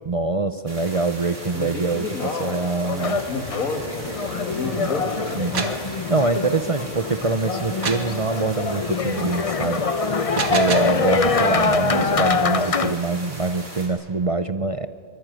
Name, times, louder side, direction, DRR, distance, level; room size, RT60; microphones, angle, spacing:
voice 1, 0.1-3.2 4.8-4.9 5.3-9.8 10.3-14.9, right 3 dB, 45° right, 11 dB, 0.4 m, -24 dB
sound 1, 0.7-13.9, right 1 dB, 60° right, 4.9 m, -39 dB
voice 2, 1.5-5.1, left 3 dB, 75° left, 3 dB, 2.1 m, -30 dB
sound 2, 3.0-12.9, left 4 dB, 30° left, 0.7 m, -24 dB
sound 3, 5.3-5.9 7.8-8.1 10.1-11.0, right 5 dB, 80° right, 2.2 m, -28 dB
23.5 x 22.0 x 9.1 m, 2.5 s
omnidirectional pair, 1.5 m